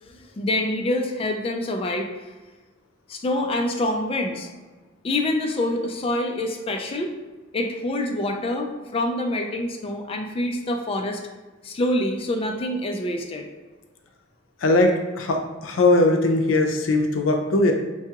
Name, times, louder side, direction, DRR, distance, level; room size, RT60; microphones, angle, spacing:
voice 1, 0.0-2.1 3.1-4.5 5.0-7.1 7.5-11.2 11.6-13.5, left 1 dB, 30° left, 3 dB, 0.3 m, -26 dB
voice 2, 14.6-17.7, left 2 dB, 90° left, 4 dB, 0.5 m, -20 dB
4.6 x 2.3 x 2.8 m, 1.2 s
head